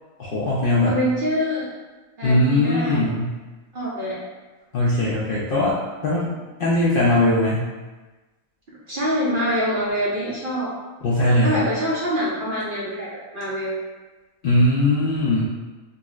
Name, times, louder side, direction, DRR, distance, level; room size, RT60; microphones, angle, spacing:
voice 1, 0.2-1.0 2.2-3.3 4.7-6.3 6.6-7.7 11.0-11.6 14.4-15.5, left 1 dB, 60° left, -7 dB, 0.6 m, -20 dB
voice 2, 0.8-1.7 2.2-3.0 3.7-4.2 8.7-10.7 11.4-13.8, equal, 55° right, -7 dB, 0.6 m, -25 dB
3.8 x 2.0 x 2.3 m, 1.2 s
omnidirectional pair, 1.4 m